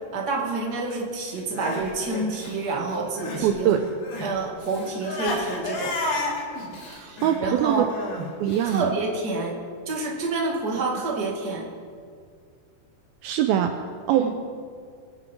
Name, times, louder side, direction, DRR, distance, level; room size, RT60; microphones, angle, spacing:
voice 1, 0.1-3.7 4.2-5.9 6.9-7.9 8.7-9.5 9.9-11.7 14.1-14.3, right 3 dB, 30° right, -2 dB, 2.2 m, -28 dB
Crying sobbing, 1.3-3.5 3.8-8.8, left 2 dB, 80° left, 5.2 m, -32 dB
voice 2, 3.4-3.8 6.9-7.9 8.4-9.0 13.2-14.3, right 10 dB, 80° right, 6 dB, 2.3 m, -23 dB
24.0 x 10.5 x 4.7 m, 2.2 s
omnidirectional pair, 4.6 m